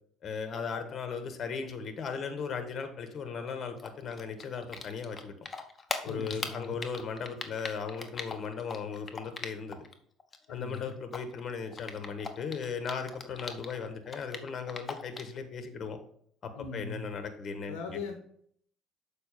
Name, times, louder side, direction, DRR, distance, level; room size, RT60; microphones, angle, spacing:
voice 1, 0.2-5.3 6.0-9.8 10.5-16.0 16.4-18.0, left 5 dB, 50° left, 7 dB, 1.4 m, -37 dB
Typing, 3.8-5.2 5.5-9.9 10.2-13.8 14.1-15.4, left 4 dB, 30° left, 1.2 m, -39 dB
voice 2, 6.0-6.8 10.5-10.9 16.5-17.0 17.7-18.1, left 4 dB, 75° left, 5 dB, 1.0 m, -40 dB
6.9 x 5.0 x 5.1 m, 0.65 s
hypercardioid pair, 60°, 0 cm